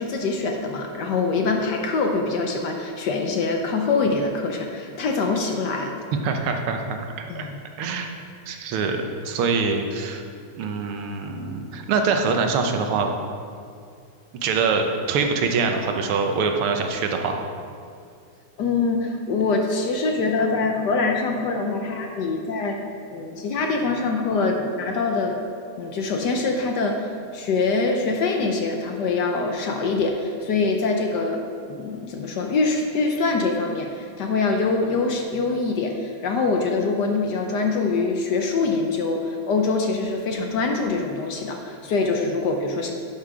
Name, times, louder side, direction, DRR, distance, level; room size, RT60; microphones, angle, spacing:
voice 1, 0.0-5.9 7.3-7.5 18.6-25.4 25.8-31.4 31.7-42.9, left 3 dB, 65° left, 3 dB, 1.2 m, -24 dB
voice 2, 6.2-7.5 7.8-8.1 8.5-10.2 10.6-13.1 14.4-17.4, right 4 dB, 85° right, 4 dB, 1.8 m, -24 dB
11.0 x 5.9 x 4.8 m, 2.3 s
omnidirectional pair, 2.3 m